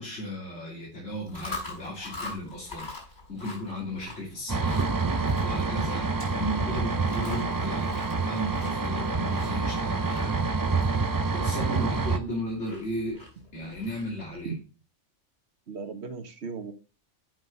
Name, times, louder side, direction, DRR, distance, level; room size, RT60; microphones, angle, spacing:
voice 1, 0.0-2.9 3.3-4.8 5.4-10.4 11.3-13.2 13.5-14.5, equal, 65° left, -5 dB, 3.2 m, -35 dB
Chewing mastication, 1.1-14.3, left 3 dB, 40° left, 5.2 m, -44 dB
sound 1, 4.5-12.2, right 4 dB, 30° right, 0.4 m, -27 dB
voice 2, 15.7-16.7, right 5 dB, 60° right, 9 dB, 1.4 m, -37 dB
8.0 x 6.0 x 5.3 m, 0.34 s
omnidirectional pair, 1.3 m